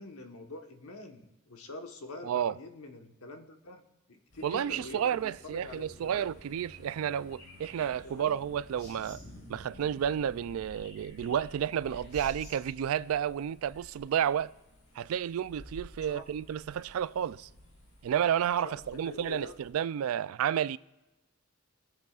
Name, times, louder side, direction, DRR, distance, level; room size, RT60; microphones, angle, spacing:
voice 1, 0.0-3.8 4.1-6.3 8.0-8.4 16.1-16.2 18.6-18.8 19.0-19.5, left 2 dB, 85° left, 1.2 m, -45 dB
voice 2, 2.2-2.6 4.4-9.2 9.5-14.5 15.0-17.5 18.0-20.8, right 9 dB, 80° right, 0.3 m, -31 dB
sound 1, 4.3-19.7, left 1 dB, 65° left, 3.7 m, -52 dB
21.5 x 7.9 x 2.4 m
head